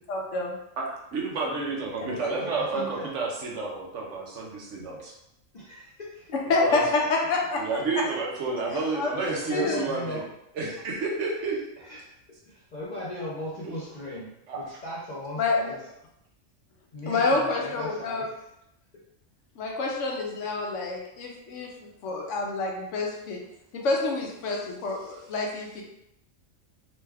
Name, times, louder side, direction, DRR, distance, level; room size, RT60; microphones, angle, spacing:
voice 1, 0.1-0.5 2.0-2.3 6.3-7.6 7.9-8.0 8.7-9.1 9.5-9.9 15.4-15.8 17.1-18.2 19.6-23.4 23.7-25.8, left 3 dB, 70° left, 0 dB, 1.0 m, -28 dB
voice 2, 1.1-5.1 6.6-6.8 7.6-10.2 10.6-11.6 14.5-14.6, right 3 dB, 70° right, -1 dB, 1.0 m, -30 dB
voice 3, 2.4-3.1 5.5-6.3 9.3-10.3 11.8-12.1 12.4-15.8 16.9-18.4, equal, 50° left, -6 dB, 0.5 m, -38 dB
3.1 x 2.2 x 3.3 m, 0.81 s
omnidirectional pair, 1.4 m